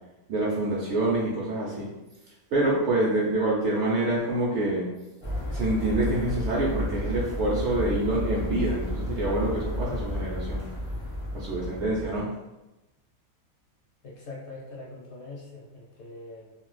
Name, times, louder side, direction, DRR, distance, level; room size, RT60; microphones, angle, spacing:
voice 1, 0.3-1.9 2.5-4.9 5.5-10.6 11.3-12.3, right 2 dB, 65° right, -4 dB, 0.8 m, -26 dB
sound 1, 5.2-12.2, left 1 dB, 35° left, 0.4 m, -32 dB
voice 2, 14.0-16.5, left 2 dB, 60° left, -3 dB, 0.8 m, -43 dB
2.5 x 2.3 x 3.2 m, 1.0 s
omnidirectional pair, 1.5 m